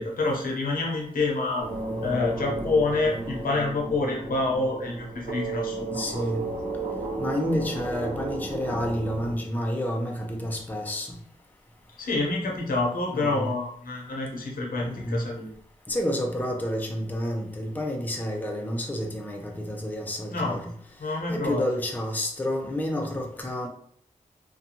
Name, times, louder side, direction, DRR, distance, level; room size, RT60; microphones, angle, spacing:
voice 1, 0.0-1.7 2.0-6.0 12.0-15.5 20.3-20.6 21.0-21.6, left 3 dB, 85° left, -1 dB, 0.8 m, -27 dB
sound 1, 1.6-9.3, right 3 dB, 85° right, 0.9 m, -33 dB
voice 2, 5.9-6.4 7.2-11.2 13.1-13.5 14.8-15.2 15.9-20.7 21.3-23.7, left 1 dB, 10° left, 1 dB, 0.4 m, -29 dB
2.5 x 2.2 x 2.8 m, 0.64 s
wide cardioid pair, 95°, 14 cm